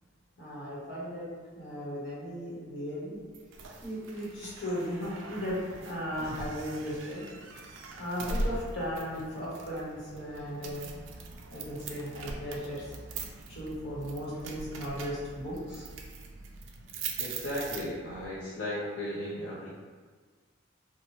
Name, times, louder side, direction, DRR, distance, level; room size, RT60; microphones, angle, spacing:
voice 1, 0.4-1.3 1.5-3.2 3.8-7.2 8.0-11.2 11.5-12.8 13.5-15.8, equal, 70° left, -7 dB, 1.0 m, -36 dB
sound 1, 3.3-18.3, right 3 dB, 75° right, 0.3 m, -41 dB
voice 2, 17.2-19.7, left 1 dB, 85° left, -9 dB, 0.5 m, -35 dB
2.7 x 2.1 x 3.0 m, 1.5 s
head